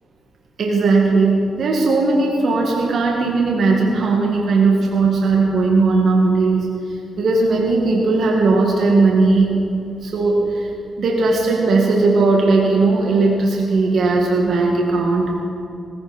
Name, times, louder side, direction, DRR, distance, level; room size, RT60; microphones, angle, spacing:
voice 1, 0.6-10.7 11.0-15.4, right 3 dB, 70° right, -1 dB, 2.2 m, -17 dB
18.5 x 16.5 x 4.5 m, 2.6 s
cardioid pair, 75°, 0 cm